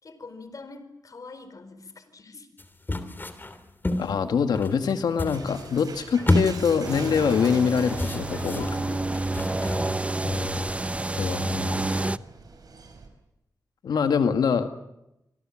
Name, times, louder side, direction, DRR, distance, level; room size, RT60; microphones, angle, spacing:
voice 1, 0.0-2.5 8.6-9.7, left 3 dB, 60° left, 11 dB, 4.6 m, -45 dB
sound 1, 2.6-4.2 4.5-5.8 6.2-7.1 7.8-10.2 10.6-11.0, left 2 dB, 30° left, 3.2 m, -29 dB
voice 2, 4.0-8.7 10.2-10.6 11.1-12.2 13.8-14.7, left 6 dB, 90° left, 8 dB, 1.8 m, -25 dB
sound 2, 5.3-13.1, right 4 dB, 70° right, 5.4 m, -45 dB
sound 3, 6.8-12.2, right 2 dB, 20° right, 0.8 m, -29 dB
25.5 x 24.0 x 7.5 m, 0.87 s
cardioid pair, 55°, 7 cm